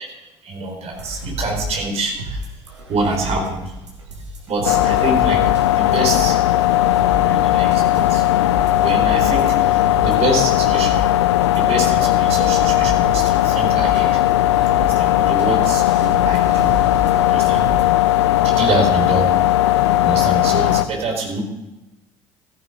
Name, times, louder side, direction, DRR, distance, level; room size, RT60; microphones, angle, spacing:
voice 1, 0.4-2.4 2.9-3.6 4.5-5.4 5.7-6.4 7.3-8.2 8.7-11.1 11.5-14.2 14.8-16.8 17.3-17.7 18.3-19.3 20.0-21.4, right 2 dB, 45° right, 2 dB, 4.1 m, -25 dB
sound 1, 0.9-18.3, equal, 80° right, 2.2 m, -32 dB
sound 2, 4.6-20.8, left 14 dB, 70° left, 0.6 m, -17 dB
16.0 x 14.0 x 3.8 m, 0.98 s
figure-of-eight pair, 60°, 15 cm